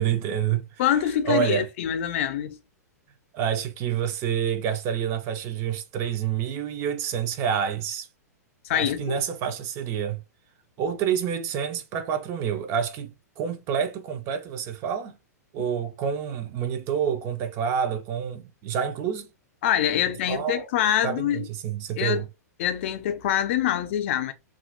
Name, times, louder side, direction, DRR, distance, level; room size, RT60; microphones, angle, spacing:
voice 1, 0.0-0.6 1.2-1.7 3.3-8.1 8.7-10.2 10.8-13.1 13.4-15.2 15.5-19.3 20.3-20.7 21.0-22.3, right 8 dB, 30° right, 0.4 m, -28 dB
voice 2, 0.8-2.6 8.7-9.2 19.6-21.5 22.0-22.2 22.6-24.3, left 10 dB, 45° left, 0.4 m, -25 dB
2.8 x 2.4 x 2.4 m
figure-of-eight pair, 105°, 9 cm